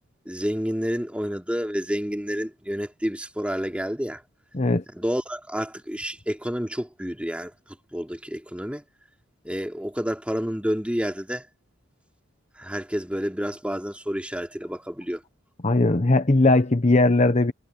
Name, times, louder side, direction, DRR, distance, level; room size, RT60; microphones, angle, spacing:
voice 1, 0.2-4.2 4.9-7.5 7.9-8.8 9.4-11.4 12.6-15.2, equal, 5° right, 3.0 m, -29 dB
voice 2, 15.6-17.5, left 2 dB, 35° left, 0.9 m, -19 dB
head